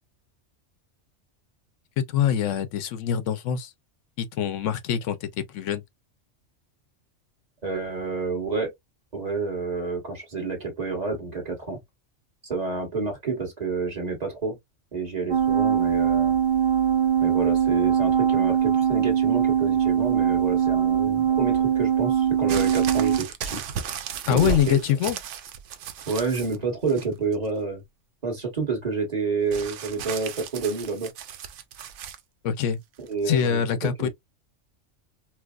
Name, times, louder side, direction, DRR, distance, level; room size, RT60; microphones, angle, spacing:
voice 1, 2.0-3.7 4.2-5.8 24.3-25.2 32.4-32.8 33.3-34.1, left 9 dB, 90° left, 1.0 m, -24 dB
voice 2, 7.6-8.7 9.1-11.8 12.4-14.6 14.9-16.3 17.2-23.6 24.3-24.8 26.1-27.8 28.2-31.1 33.1-34.1, right 4 dB, 35° right, 1.3 m, -29 dB
sound 1, 15.3-23.2, right 9 dB, 55° right, 0.7 m, -22 dB
sound 2, 22.5-26.6 26.9-27.5 29.5-32.2 33.1-33.2, right 7 dB, 80° right, 0.9 m, -35 dB
4.5 x 2.0 x 2.3 m
omnidirectional pair, 1.3 m